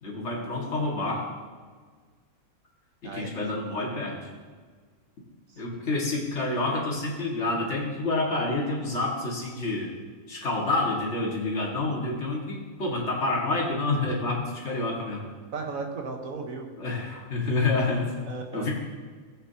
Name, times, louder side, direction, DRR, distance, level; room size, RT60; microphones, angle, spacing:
voice 1, 0.0-1.3 3.0-4.3 5.6-9.9 10.3-15.2 16.8-18.7, left 2 dB, 50° left, -2 dB, 2.2 m, -28 dB
voice 2, 15.5-16.7 18.3-18.7, right 4 dB, 65° right, 3 dB, 1.5 m, -36 dB
16.0 x 8.1 x 2.8 m, 1.5 s
omnidirectional pair, 1.6 m